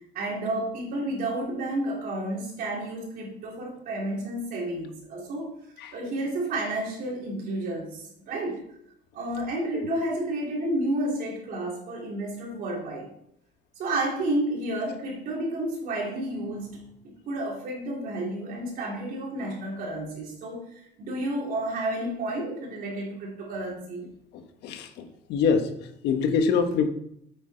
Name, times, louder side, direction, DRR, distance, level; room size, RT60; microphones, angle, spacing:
voice 1, 0.1-5.5 5.9-8.6 9.1-13.1 13.8-16.8 17.3-24.1, right 1 dB, 55° right, -2 dB, 3.7 m, -31 dB
voice 2, 24.6-25.7 26.0-26.9, left 6 dB, 70° left, 7 dB, 1.3 m, -24 dB
8.9 x 8.4 x 4.5 m, 0.72 s
cardioid pair, 165°, 18 cm